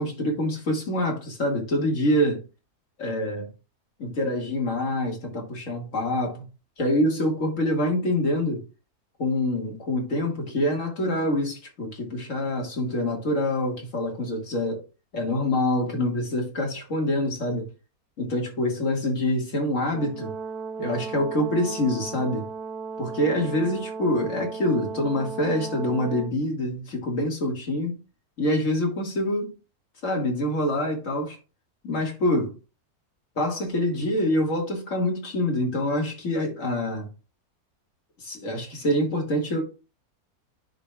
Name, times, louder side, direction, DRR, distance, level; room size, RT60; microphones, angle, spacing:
voice 1, 0.0-2.4 3.0-3.5 4.0-6.5 6.8-8.6 9.2-14.8 15.1-17.7 18.2-20.3 20.8-22.4 23.0-28.0 28.4-29.5 30.0-31.4 31.8-32.5 33.4-37.1 38.2-39.6, left 1 dB, 55° left, 2.2 m, -26 dB
Brass instrument, 19.9-26.3, right 5 dB, 75° right, 1.3 m, -35 dB
10.0 x 5.0 x 2.3 m
omnidirectional pair, 1.6 m